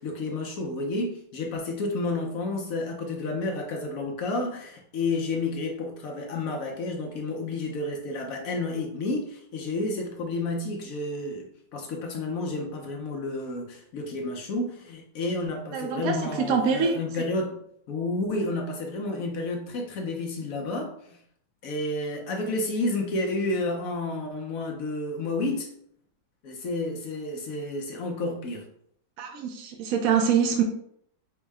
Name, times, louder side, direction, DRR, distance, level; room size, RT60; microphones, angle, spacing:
voice 1, 0.0-17.6 17.9-21.2 21.6-25.7 26.4-28.7, left 2 dB, 65° left, 2 dB, 0.9 m, -30 dB
voice 2, 15.7-17.0 29.2-30.6, right 7 dB, 75° right, 4 dB, 0.8 m, -25 dB
4.5 x 2.1 x 4.7 m, 0.68 s
omnidirectional pair, 2.0 m